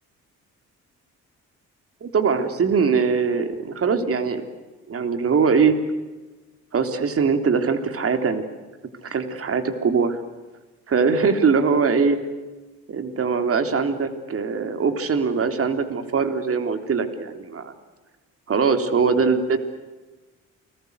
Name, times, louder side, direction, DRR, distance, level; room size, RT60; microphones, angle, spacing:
voice 1, 2.0-4.4 4.9-5.8 6.7-8.5 9.0-10.2 10.9-12.2 12.9-17.7 18.5-19.6, right 5 dB, 50° right, 8 dB, 3.4 m, -22 dB
29.5 x 21.5 x 8.1 m, 1.2 s
cardioid pair, 90°, 30 cm